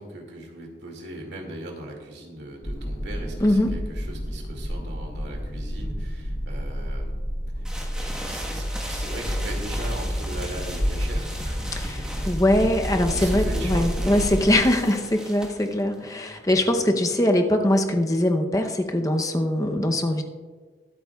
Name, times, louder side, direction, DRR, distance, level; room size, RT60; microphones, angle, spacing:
voice 1, 0.0-7.1 7.6-7.7 8.0-12.3 13.1-14.1, right 1 dB, 75° right, 1 dB, 2.3 m, -39 dB
sound 1, 2.6-14.6, equal, 55° left, 2.3 m, -30 dB
sound 2, 7.6-17.2, equal, 5° right, 1.3 m, -38 dB
voice 2, 12.3-20.2, left 1 dB, 20° left, 4 dB, 0.7 m, -22 dB
22.0 x 8.5 x 2.3 m, 1.5 s
head